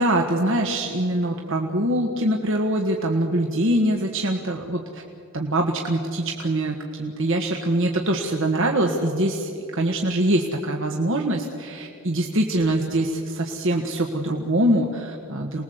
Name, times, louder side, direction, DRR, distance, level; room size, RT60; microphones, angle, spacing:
voice 1, 0.0-5.0 5.3-15.6, right 1 dB, 65° right, 1 dB, 1.6 m, -23 dB
28.0 x 20.5 x 8.0 m, 2.7 s
head